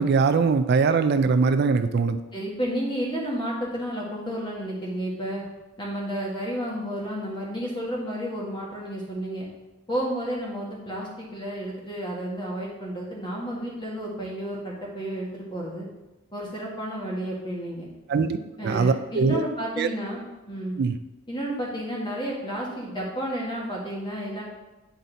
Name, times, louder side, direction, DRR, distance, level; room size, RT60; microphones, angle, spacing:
voice 1, 0.0-2.2 18.1-18.4 18.6-19.4 19.8-19.9 20.8-20.9, right 4 dB, 50° right, 10 dB, 0.3 m, -21 dB
voice 2, 2.3-5.4 5.8-9.5 9.9-15.9 16.3-17.9 18.6-20.8 21.3-24.4, equal, 20° left, -3 dB, 1.6 m, -31 dB
9.3 x 4.0 x 4.0 m, 1.1 s
head